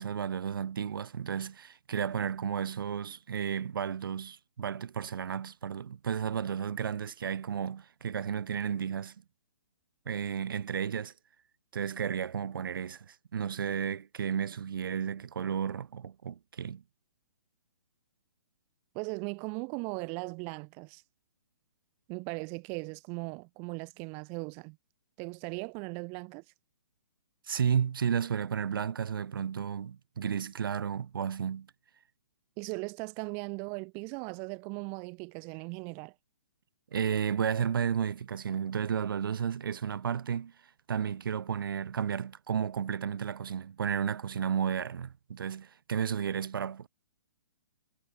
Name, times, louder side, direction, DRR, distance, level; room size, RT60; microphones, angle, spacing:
voice 1, 0.0-9.1 10.1-11.1 11.7-16.8 27.5-31.7 36.9-40.5 40.9-46.9, right 7 dB, 85° right, 0.5 m, -33 dB
voice 2, 18.9-21.0 22.1-24.8 25.2-26.4 32.6-36.1, right 35 dB, 20° right, 0.4 m, -38 dB
hypercardioid pair, 160°, 11 cm